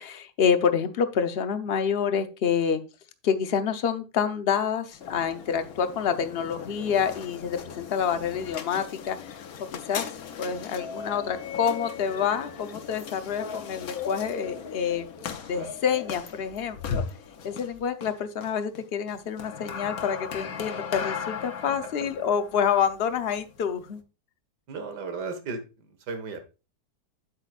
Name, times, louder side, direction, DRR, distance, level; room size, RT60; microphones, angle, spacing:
voice 1, 0.0-2.8 3.2-9.4 9.9-15.1 15.5-17.0 17.4-24.0, left 7 dB, 50° left, 8 dB, 0.8 m, -27 dB
sound 1, 4.9-24.0, left 6 dB, 65° left, 1.3 m, -38 dB
voice 2, 24.7-26.4, right 4 dB, 85° right, 8 dB, 2.1 m, -36 dB
8.9 x 8.2 x 2.4 m, 0.30 s
omnidirectional pair, 1.7 m